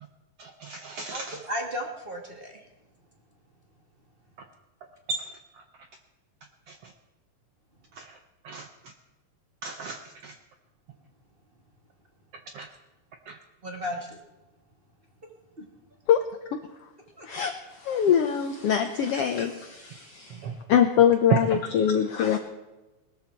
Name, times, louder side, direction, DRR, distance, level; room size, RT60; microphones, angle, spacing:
voice 1, 0.4-1.4 5.1-5.2 8.0-8.1 8.4-8.7 9.6-10.3 12.5-12.7 13.3-13.4 20.4-20.6, right 3 dB, 70° right, 5 dB, 1.4 m, -36 dB
voice 2, 1.1-2.6 13.6-14.0 15.6-15.7 17.2-17.3, left 1 dB, 25° right, 1 dB, 1.3 m, -34 dB
voice 3, 17.3-22.4, left 8 dB, 75° left, 6 dB, 1.4 m, -23 dB
19.5 x 13.0 x 4.5 m, 1.1 s
omnidirectional pair, 3.7 m